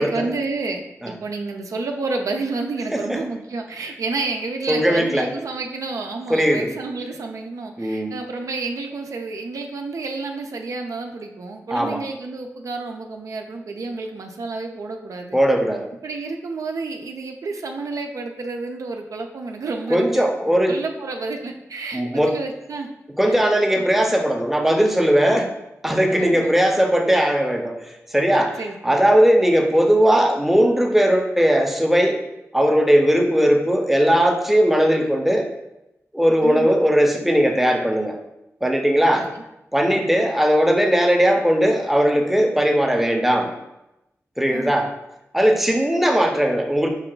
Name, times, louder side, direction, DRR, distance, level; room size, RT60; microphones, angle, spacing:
voice 1, 0.0-15.4 16.0-22.9 23.3-23.5 23.8-23.9 26.2-26.6 28.6-29.0 36.4-36.8 39.2-39.4 39.9-40.1 44.5-44.8, right 3 dB, 80° right, 3 dB, 0.5 m, -30 dB
voice 2, 4.7-5.3 6.3-6.7 7.8-8.1 11.7-12.0 15.3-15.9 19.9-20.8 21.9-22.4 23.2-25.5 25.8-32.2 32.5-35.5 36.1-38.2 38.6-39.3 39.7-43.5 44.4-44.9 45.3-46.9, equal, 5° right, 3 dB, 0.6 m, -18 dB
5.4 x 2.3 x 3.7 m, 0.90 s
wide cardioid pair, 85°, 6 cm